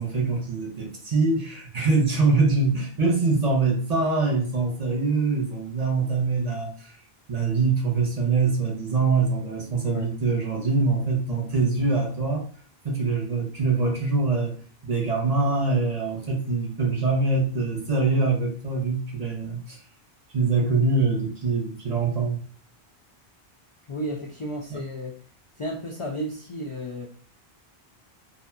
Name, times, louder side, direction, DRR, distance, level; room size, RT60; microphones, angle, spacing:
voice 1, 0.0-7.0 7.3-12.5 12.8-19.8 20.3-22.4 24.7-24.8, right 3 dB, 45° right, -1 dB, 0.7 m, -24 dB
voice 2, 9.8-10.2 23.9-25.1 25.6-27.1, equal, 55° left, -1 dB, 0.3 m, -33 dB
2.7 x 2.5 x 2.3 m, 0.42 s
omnidirectional pair, 1.0 m